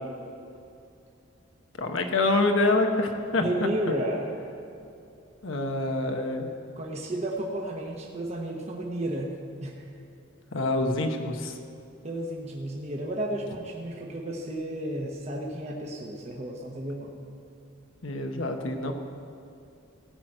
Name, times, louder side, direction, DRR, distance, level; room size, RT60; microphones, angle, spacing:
voice 1, 1.8-3.5 5.4-6.5 10.5-11.6 18.0-18.9, left 2 dB, 80° left, 4 dB, 1.1 m, -26 dB
voice 2, 3.4-4.3 6.8-9.8 12.0-17.2, right 1 dB, 35° right, -1 dB, 1.0 m, -32 dB
16.5 x 5.9 x 7.8 m, 2.6 s
head